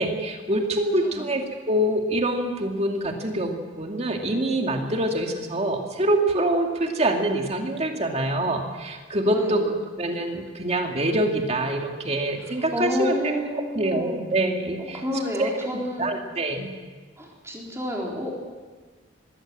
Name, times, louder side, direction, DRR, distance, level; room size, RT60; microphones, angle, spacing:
voice 1, 0.0-9.7 10.0-13.1 13.7-15.0 15.4-15.5 16.0-16.7, right 1 dB, 35° right, 3 dB, 2.3 m, -25 dB
voice 2, 9.3-9.8 12.4-14.2 14.8-16.1 17.2-18.3, equal, 15° right, -2 dB, 4.1 m, -30 dB
21.5 x 16.5 x 7.6 m, 1.4 s
head